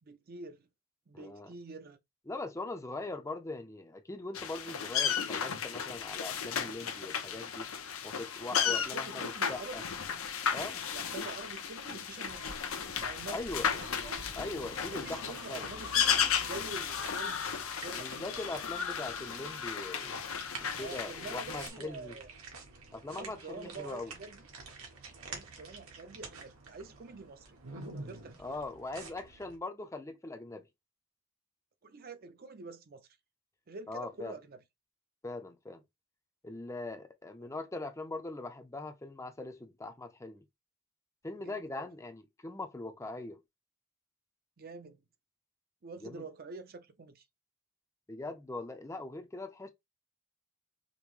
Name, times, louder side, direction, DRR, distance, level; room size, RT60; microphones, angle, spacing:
voice 1, 0.0-0.7 1.1-2.0 8.5-9.9 10.9-12.6 13.0-13.8 14.9-18.4 20.8-22.3 23.1-24.4 25.2-27.6 27.9-28.6 31.8-33.1 33.7-34.6 37.4-37.5 41.4-41.9 44.6-45.0 45.8-47.2, right 3 dB, 45° right, 0.5 m, -47 dB
voice 2, 1.1-1.5 2.3-7.7 8.0-9.8 10.5-10.9 13.3-13.7 14.3-15.7 17.9-20.2 20.6-22.2 22.9-24.1 28.4-30.7 33.9-34.4 35.2-35.8 36.4-40.4 41.2-43.4 46.0-46.2 48.1-49.7, left 2 dB, 15° left, 0.5 m, -41 dB
sound 1, 4.3-21.7, left 7 dB, 75° left, 0.7 m, -34 dB
sound 2, 12.2-29.6, right 3 dB, 80° right, 1.3 m, -49 dB
5.2 x 2.1 x 3.1 m
head